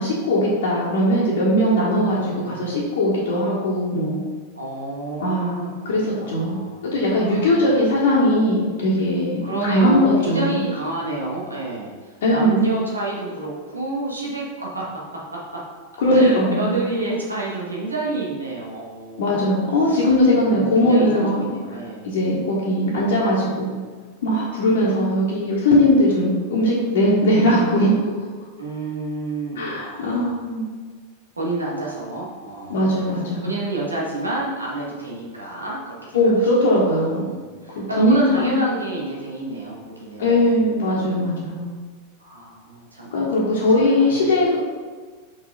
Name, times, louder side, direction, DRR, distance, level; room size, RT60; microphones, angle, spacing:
voice 1, 0.0-4.2 5.2-5.6 5.8-6.6 6.8-10.6 12.2-12.7 16.0-16.8 19.2-21.5 22.0-23.8 24.2-27.9 29.6-30.6 32.7-33.5 36.1-37.3 37.7-38.6 40.2-41.7 43.1-44.6, left 1 dB, 60° left, -6 dB, 1.4 m, -19 dB
voice 2, 1.9-2.7 4.6-7.9 9.4-14.9 15.3-15.6 16.1-19.3 19.8-22.0 28.6-30.4 31.4-33.0 33.4-41.2 42.2-43.1 43.8-44.3, right 2 dB, 80° right, -4 dB, 1.7 m, -29 dB
5.8 x 4.9 x 4.2 m, 1.5 s
figure-of-eight pair, 90°, 0 cm